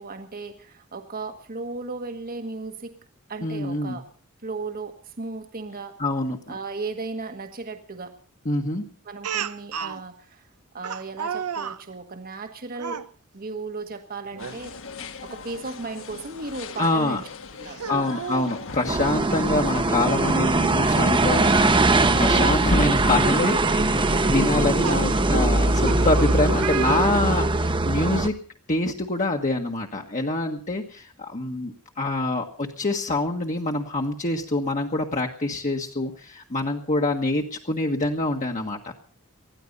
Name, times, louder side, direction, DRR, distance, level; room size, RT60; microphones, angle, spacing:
voice 1, 0.0-3.0 3.3-4.1 4.4-6.0 6.5-8.2 9.0-10.4 10.7-13.0 13.3-14.7 15.2-17.8 24.8-25.2, right 3 dB, 40° right, 7 dB, 1.4 m, -35 dB
voice 2, 3.4-4.0 6.0-6.4 8.4-8.8 16.8-17.2 17.9-28.3 28.7-38.9, left 2 dB, 35° left, 1 dB, 1.5 m, -26 dB
Speech, 9.2-10.0 10.8-11.8 12.7-13.1 14.3-14.6 15.0-15.1 16.8-16.9 17.7-18.5 19.9-20.0 20.3-20.4 22.3-22.4 23.0-23.2 24.3-27.7, right 7 dB, 80° right, 0.9 m, -33 dB
sound 1, 14.4-26.1, left 4 dB, 65° left, 1.7 m, -41 dB
sound 2, 18.9-28.3, right 2 dB, 20° right, 0.9 m, -21 dB
20.0 x 13.5 x 5.4 m, 0.43 s
head